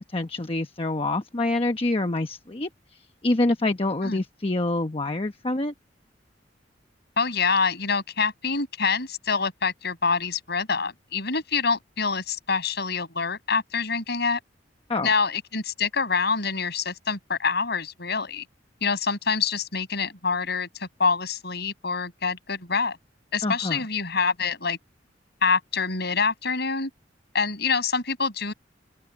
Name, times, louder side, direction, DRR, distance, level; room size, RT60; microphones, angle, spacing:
voice 1, 0.0-2.7 3.2-5.7 14.9-15.1 23.4-23.8, left 2 dB, 30° left, 1.0 m, -26 dB
voice 2, 7.2-14.4 15.0-18.4 18.8-23.0 23.3-24.8 25.4-26.9 27.3-28.5, left 5 dB, 60° left, 6.8 m, -26 dB
open air
head